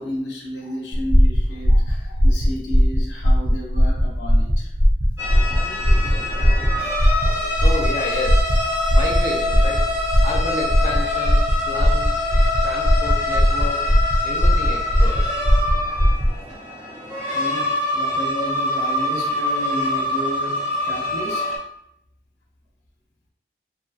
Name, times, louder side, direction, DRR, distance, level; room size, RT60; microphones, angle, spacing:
voice 1, 0.0-4.7 17.3-21.5, left 1 dB, 80° left, -1 dB, 0.6 m, -32 dB
sound 1, 0.9-16.4, equal, 30° right, 0.4 m, -18 dB
sound 2, 5.2-21.6, left 2 dB, 15° right, 1.0 m, -25 dB
voice 2, 7.6-9.9 10.2-12.3 12.6-15.3, left 2 dB, 40° left, -2 dB, 0.6 m, -31 dB
2.6 x 2.3 x 2.5 m, 0.76 s
head